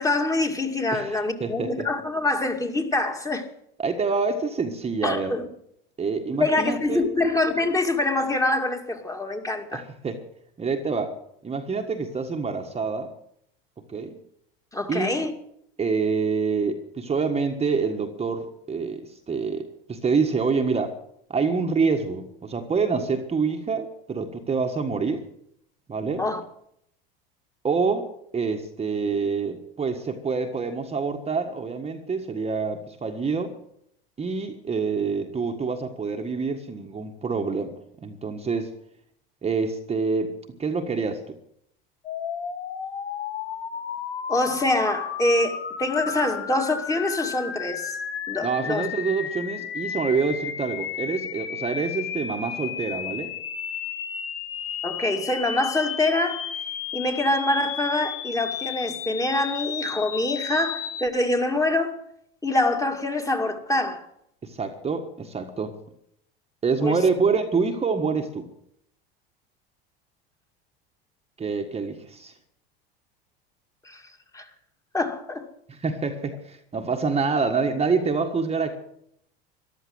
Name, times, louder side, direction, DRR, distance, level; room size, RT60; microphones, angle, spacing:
voice 1, 0.0-3.5 5.0-5.5 6.3-9.8 14.7-15.3 26.2-26.4 44.3-48.0 48.3-48.8 54.8-56.5 56.9-62.0 62.4-64.1 66.8-67.0 73.8-74.0 74.3-74.5 74.9-75.5, left 2 dB, 10° left, 2.3 m, -25 dB
voice 2, 0.9-1.7 3.8-5.4 6.0-7.1 9.7-10.2 10.6-11.1 11.4-13.1 13.9-14.1 14.9-15.3 15.8-21.0 21.3-25.2 25.9-26.2 27.6-33.5 34.2-37.7 38.0-38.7 39.4-41.4 48.4-53.3 64.4-65.7 66.6-68.5 71.4-72.3 75.7-78.8, right 4 dB, 20° right, 1.6 m, -26 dB
sound 1, 42.0-61.1, left 8 dB, 85° left, 2.0 m, -33 dB
14.0 x 12.0 x 7.9 m
hypercardioid pair, 95°, 29 cm